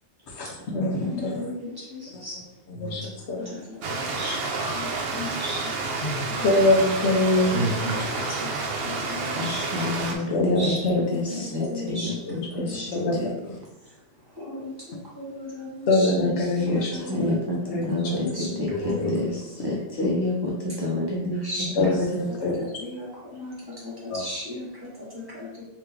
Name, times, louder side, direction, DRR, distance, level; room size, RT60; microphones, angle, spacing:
voice 1, 0.3-1.5 2.1-2.2 2.8-3.6 4.6-4.8 6.0-7.9 10.3-11.9 12.3-13.5 15.9-16.9 17.2-17.4 17.7-17.9 18.1-18.2 18.8-19.1 20.0-20.1 21.8-22.6 24.1-24.2, left 2 dB, 70° left, 0 dB, 1.0 m, -25 dB
voice 2, 1.0-2.4 3.4-4.4 4.7-5.7 6.2-6.6 7.8-9.6 10.0-12.2 12.5-13.4 13.8-16.1 16.5-18.6 18.9-19.4 21.3-22.0 22.3-25.6, left 2 dB, 20° right, -8 dB, 1.4 m, -37 dB
Stream, 3.8-10.2, right 3 dB, 65° right, 0.8 m, -29 dB
voice 3, 9.4-13.3 16.1-22.3, left 1 dB, 35° right, -4 dB, 0.4 m, -29 dB
3.3 x 2.9 x 3.5 m, 0.94 s
omnidirectional pair, 1.2 m